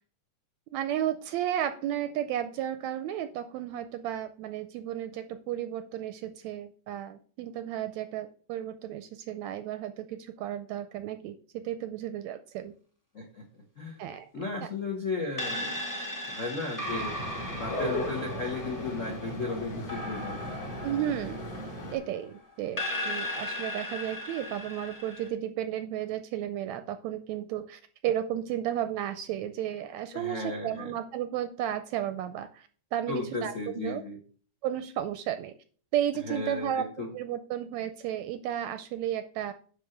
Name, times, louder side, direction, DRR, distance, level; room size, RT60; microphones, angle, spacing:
voice 1, 0.7-12.7 14.0-14.3 14.6-14.7 20.8-21.4 21.9-34.0 34.6-35.5 35.9-39.5, right 11 dB, 80° right, 11 dB, 1.7 m, -33 dB
voice 2, 13.8-14.1 14.3-15.8 16.3-17.1 17.5-20.7 30.1-30.9 33.1-34.2 36.2-37.1, left 3 dB, 70° left, 1 dB, 0.7 m, -35 dB
sound 1, 15.4-22.2 22.8-25.3, left 1 dB, 10° left, 1.1 m, -37 dB
sound 2, 16.8-22.0, equal, 50° left, 4.1 m, -37 dB
10.0 x 3.5 x 6.5 m, 0.44 s
omnidirectional pair, 3.6 m